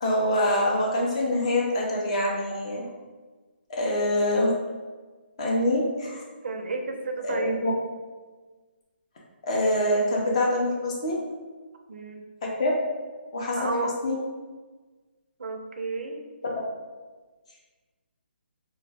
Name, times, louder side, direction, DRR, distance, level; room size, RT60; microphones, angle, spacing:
voice 1, 0.0-2.8 3.7-4.5 5.4-6.2 7.2-7.7 9.4-11.2 12.4-12.7 13.3-14.2 16.4-16.6, left 1 dB, 35° left, -2 dB, 0.5 m, -25 dB
voice 2, 6.4-7.6 11.9-12.3 13.6-13.9 15.4-16.2, right 3 dB, 65° right, 4 dB, 0.4 m, -31 dB
2.1 x 2.1 x 3.3 m, 1.3 s
hypercardioid pair, 170°, 6 cm